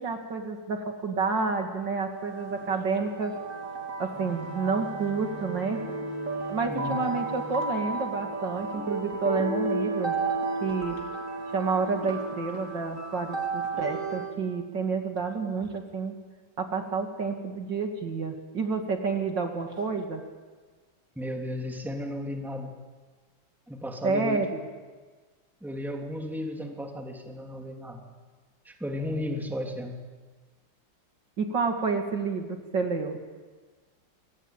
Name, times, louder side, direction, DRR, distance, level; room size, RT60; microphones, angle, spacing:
voice 1, 0.0-3.3 4.0-5.8 6.5-10.2 10.6-11.0 11.5-16.1 16.6-20.2 24.0-24.6 31.4-33.2, right 4 dB, 60° right, 4 dB, 3.1 m, -29 dB
sound 1, 2.0-14.4, right 3 dB, 35° right, 3.6 m, -33 dB
sound 2, 4.1-9.2 9.7-9.8 10.1-10.3 10.7-11.0, equal, 80° left, 5.4 m, -46 dB
voice 2, 21.2-22.7 23.7-24.5 25.6-28.0 28.6-30.0, left 1 dB, ahead, 2 dB, 2.9 m, -34 dB
27.5 x 24.0 x 9.1 m, 1.4 s
omnidirectional pair, 2.2 m